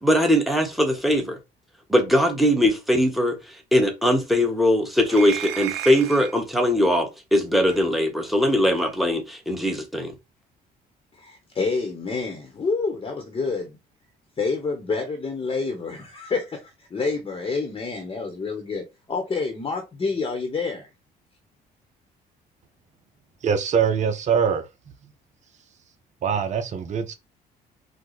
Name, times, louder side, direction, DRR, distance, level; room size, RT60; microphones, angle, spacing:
voice 1, 0.0-1.4 1.9-3.4 3.7-10.1, equal, ahead, 1.3 m, -21 dB
sound 1, 5.1-6.4 7.7-7.8 8.8-8.9, right 12 dB, 90° right, 0.6 m, -33 dB
voice 2, 11.1-13.8 14.4-20.9, left 4 dB, 30° left, 1.1 m, -28 dB
voice 3, 23.4-24.6 25.0-25.1 26.2-27.1, right 7 dB, 45° right, 0.8 m, -23 dB
4.8 x 2.3 x 4.0 m
cardioid pair, 110°, 17 cm